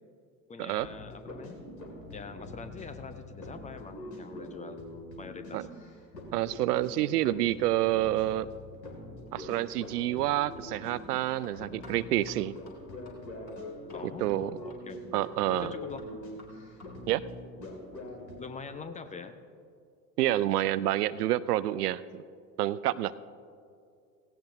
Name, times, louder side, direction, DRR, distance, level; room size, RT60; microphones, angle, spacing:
voice 1, 0.5-1.6 2.1-4.8 5.2-5.7 13.9-15.0 15.5-16.2 18.4-19.3, left 4 dB, 15° left, 10 dB, 0.6 m, -44 dB
sound 1, 0.8-18.5, left 1 dB, 75° left, 2.5 m, -44 dB
voice 2, 6.3-8.5 9.3-12.5 14.2-14.5 15.1-15.7 17.1-17.2 20.2-22.2 22.6-23.1, right 14 dB, 70° right, 17 dB, 0.5 m, -28 dB
sound 2, 9.1-17.2, left 3 dB, 30° left, 3.1 m, -57 dB
17.0 x 16.5 x 2.7 m, 2.3 s
figure-of-eight pair, 80°, 50 cm